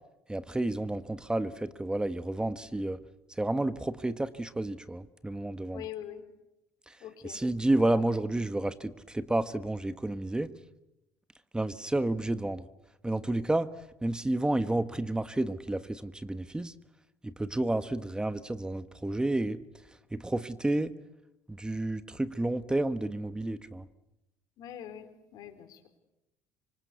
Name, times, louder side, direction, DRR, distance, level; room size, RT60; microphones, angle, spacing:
voice 1, 0.3-3.0 3.3-5.8 6.9-10.5 11.5-12.7 13.0-16.7 17.2-19.6 20.1-20.9 21.5-23.9, right 2 dB, 10° right, 12 dB, 1.4 m, -31 dB
voice 2, 5.7-6.2 7.0-7.4 7.8-8.0 24.6-25.8, left 10 dB, 65° left, 9 dB, 3.9 m, -43 dB
27.0 x 24.5 x 8.3 m, 0.92 s
hypercardioid pair, 65°, 7 cm